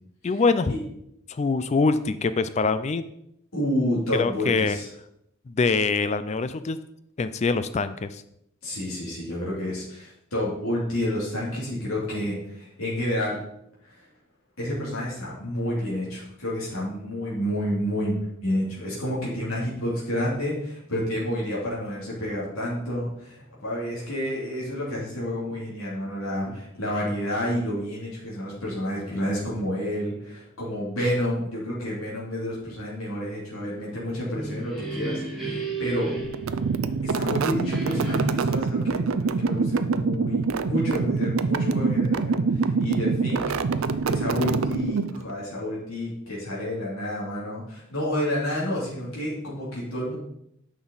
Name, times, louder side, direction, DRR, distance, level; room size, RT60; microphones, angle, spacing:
voice 1, 0.2-0.7 1.3-3.1 4.1-4.8 5.5-6.8 7.2-8.2, left 4 dB, 35° left, 13 dB, 0.4 m, -24 dB
voice 2, 3.5-4.9 8.6-13.4 13.8-14.1 14.6-36.2 37.0-43.4 43.7-50.1, equal, 85° left, -6 dB, 2.7 m, -29 dB
sound 1, 34.1-37.2 37.6-38.6, right 3 dB, ahead, 2.9 m, -33 dB
sound 2, 36.3-45.3, right 4 dB, 75° right, 0.5 m, -25 dB
9.4 x 6.1 x 4.0 m, 0.77 s
head